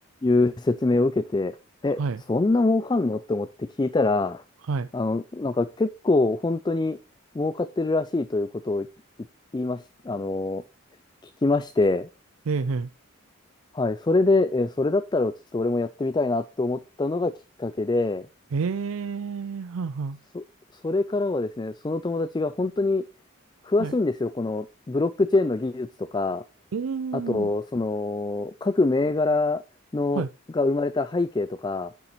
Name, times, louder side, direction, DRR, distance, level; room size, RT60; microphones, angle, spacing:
voice 1, 0.2-1.6 1.8-2.0 2.3-4.4 4.9-7.0 7.3-8.9 9.5-10.6 11.4-12.1 13.7-17.3 17.6-18.3 20.3-20.4 20.8-23.0 23.6-26.4 27.1-29.6 29.9-30.2 30.5-31.9, left 2 dB, 20° left, 0.3 m, -24 dB
voice 2, 12.5-12.9 18.5-20.2 23.8-23.9 26.7-27.5 30.1-30.3, right 5 dB, 80° right, 0.5 m, -29 dB
9.9 x 6.9 x 3.0 m
head